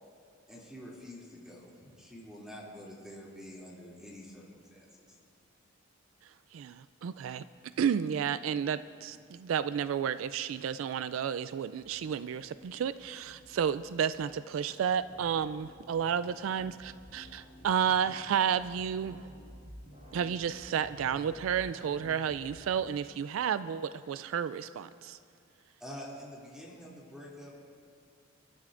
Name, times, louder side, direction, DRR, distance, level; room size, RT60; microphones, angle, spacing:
voice 1, 0.5-5.2 25.8-27.6, equal, 5° right, -5 dB, 2.6 m, -47 dB
voice 2, 6.5-7.4 7.8-19.2 20.1-25.2, right 8 dB, 75° right, 14 dB, 0.3 m, -31 dB
sound 1, 9.0-22.7, equal, 40° right, 3.5 m, -54 dB
29.5 x 13.0 x 2.5 m, 2.2 s
head